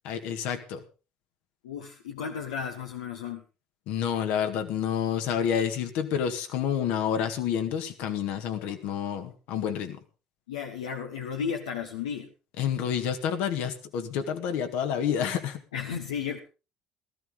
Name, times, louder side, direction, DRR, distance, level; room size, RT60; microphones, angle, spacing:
voice 1, 0.1-0.8 3.9-10.0 12.6-15.6, left 8 dB, 75° left, 7 dB, 1.9 m, -29 dB
voice 2, 1.6-3.4 8.5-9.3 10.5-12.3 15.7-16.4, left 7 dB, 90° left, 3 dB, 1.2 m, -34 dB
16.5 x 14.0 x 3.8 m, 0.32 s
hypercardioid pair, 65°, 3 cm